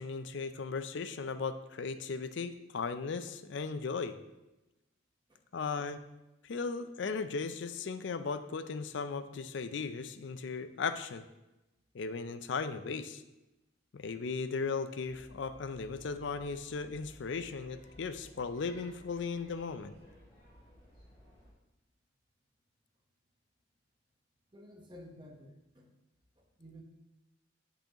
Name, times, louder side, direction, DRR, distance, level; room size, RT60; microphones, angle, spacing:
voice 1, 0.0-4.2 5.5-6.0 6.4-11.2 11.9-13.2 13.9-19.9, left 4 dB, 60° left, 11 dB, 0.4 m, -37 dB
sound 1, 15.0-21.5, equal, 20° left, 2.6 m, -57 dB
voice 2, 24.5-25.9 26.4-26.8, equal, 25° right, 0 dB, 1.1 m, -53 dB
8.6 x 5.6 x 2.9 m, 0.98 s
head